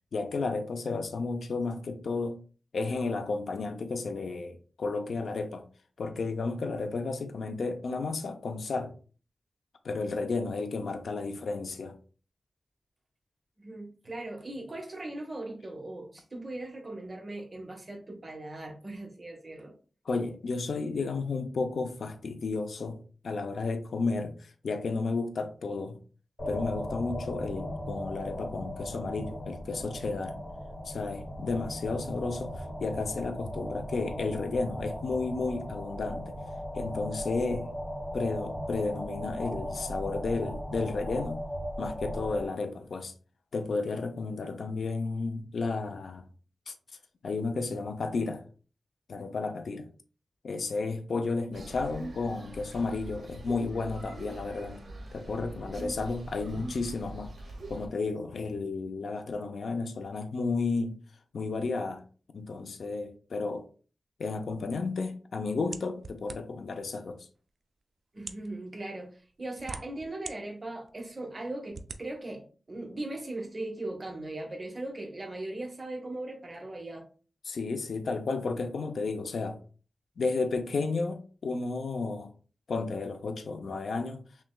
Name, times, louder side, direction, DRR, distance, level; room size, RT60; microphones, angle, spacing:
voice 1, 0.1-2.4 2.7-5.6 6.0-8.9 9.8-11.9 20.1-23.0 23.2-26.0 26.5-30.4 30.9-36.4 36.7-37.7 38.1-41.4 41.8-43.1 43.5-46.2 46.7-46.8 47.2-48.4 49.1-49.9 50.4-54.8 55.1-57.3 57.7-61.0 61.3-62.0 62.3-63.6 64.2-67.3 77.5-79.6 80.2-82.3 82.7-84.2, left 3 dB, 85° left, 0.4 m, -32 dB
voice 2, 13.6-19.7 68.1-77.1, right 2 dB, 35° right, 1.0 m, -39 dB
sound 1, 26.4-42.5, equal, 30° left, 1.0 m, -37 dB
sound 2, 51.5-57.9, right 2 dB, 80° right, 0.7 m, -42 dB
sound 3, 65.7-66.7 67.5-67.6 68.1-68.5 69.3-70.3 70.9-71.0 71.7-72.0, right 4 dB, 60° right, 0.4 m, -41 dB
6.0 x 2.2 x 2.3 m
wide cardioid pair, 105°, 0 cm